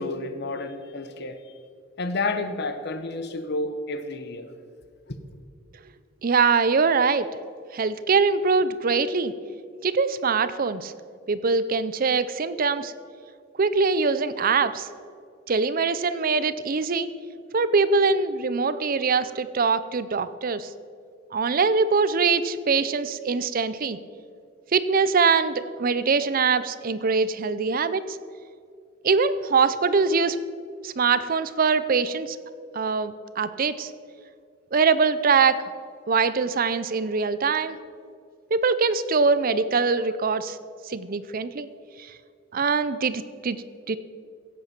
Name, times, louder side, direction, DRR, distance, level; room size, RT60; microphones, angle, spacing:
voice 1, 0.0-1.4 2.0-4.5 5.1-5.2, left 2 dB, 55° left, 9 dB, 1.0 m, -30 dB
voice 2, 6.2-7.3 7.7-9.3 9.8-10.9 11.3-12.9 13.6-14.9 15.5-17.2 17.5-20.7 21.3-24.0 24.7-28.2 29.0-30.4 30.8-32.4 32.7-33.9 34.7-35.6 36.1-37.8 38.5-40.6 40.8-41.7 42.5-44.0, right 4 dB, 45° right, 14 dB, 0.5 m, -23 dB
16.5 x 8.3 x 6.0 m, 2.2 s
head